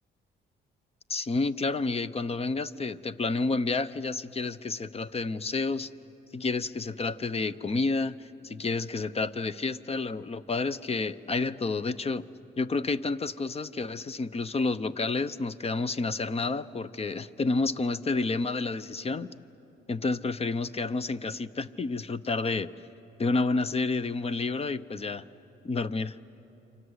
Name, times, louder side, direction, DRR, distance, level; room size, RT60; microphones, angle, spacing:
voice 1, 1.1-5.9 6.3-12.2 12.6-19.3 19.9-22.7 23.2-25.2 25.6-26.2, left 3 dB, 30° left, 15 dB, 0.7 m, -30 dB
28.5 x 25.0 x 8.1 m, 2.9 s
cardioid pair, 90°, 20 cm